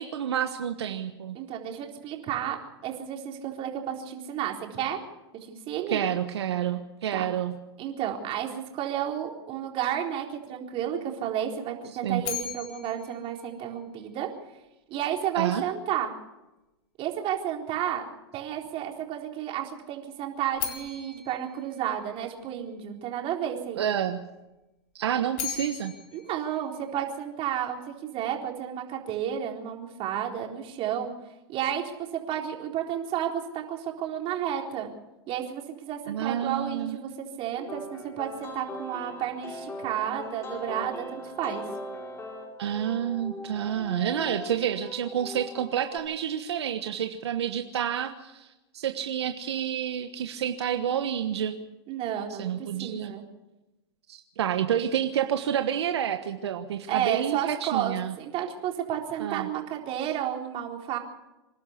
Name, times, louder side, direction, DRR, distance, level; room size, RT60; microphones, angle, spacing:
voice 1, 0.0-1.4 5.9-7.6 12.0-12.2 15.3-15.6 23.8-24.2 24.9-25.9 36.1-37.0 42.6-48.5 48.7-51.6 52.4-53.1 54.1-58.1 59.2-59.5 60.0-60.1, right 9 dB, 80° right, 7 dB, 1.2 m, -29 dB
voice 2, 1.3-2.6 2.8-5.0 5.5-6.0 7.1-7.2 7.8-14.3 14.9-16.1 17.0-18.0 18.3-23.8 26.1-31.1 31.5-34.9 35.3-41.6 51.9-53.2 56.9-61.0, right 10 dB, 40° right, 1 dB, 4.0 m, -32 dB
sound 1, 12.2-14.4 20.5-22.7 25.1-27.5, left 10 dB, 55° left, 4.0 m, -39 dB
sound 2, 37.6-46.0, left 1 dB, 20° left, 7.1 m, -40 dB
26.5 x 12.0 x 8.3 m, 1.0 s
hypercardioid pair, 110°, 14 cm